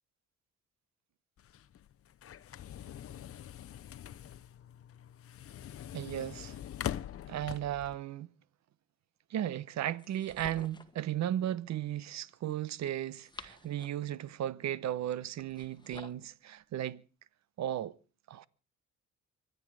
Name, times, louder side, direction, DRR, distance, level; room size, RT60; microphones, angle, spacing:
sound 1, 1.4-7.9, left 11 dB, 50° left, 0.7 m, -43 dB
voice 1, 5.9-6.6 7.3-8.3 9.3-17.0 17.6-18.0 18.3-18.5, right 11 dB, 65° right, 0.9 m, -35 dB
sound 2, 10.0-11.0 13.0-14.1 15.4-16.3, left 3 dB, 15° left, 1.4 m, -51 dB
25.0 x 9.4 x 4.8 m
cardioid pair, 90°, 30 cm